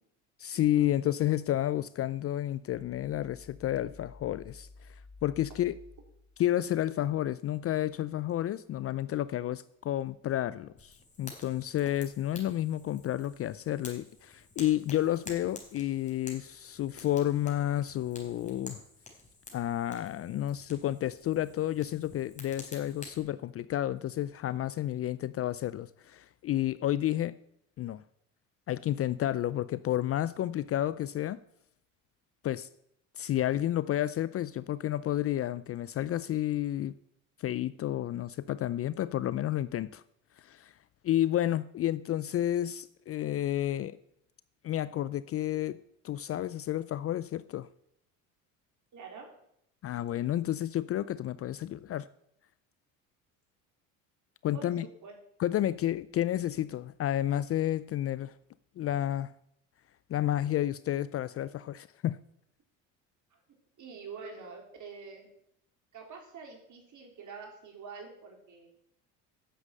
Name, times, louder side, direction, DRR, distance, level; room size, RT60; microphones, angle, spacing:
voice 1, 0.4-4.7 5.2-5.8 6.4-18.8 19.5-27.3 27.8-28.0 28.7-31.4 32.4-32.7 33.2-36.9 37.4-40.0 40.4-40.7 41.0-44.0 44.6-45.8 46.0-47.7 49.8-52.1 54.4-54.9 55.4-58.3 58.8-59.3 60.1-62.2, left 12 dB, 40° left, 0.4 m, -31 dB
sound 1, 2.7-7.2, left 3 dB, 55° left, 3.0 m, -53 dB
Fire, 10.8-23.2, left 3 dB, 20° left, 4.0 m, -50 dB
voice 2, 48.9-49.3 54.5-55.1 63.8-65.3 65.9-68.7, right 5 dB, 50° right, 3.8 m, -46 dB
10.0 x 7.3 x 7.5 m
supercardioid pair, 80°, 39 cm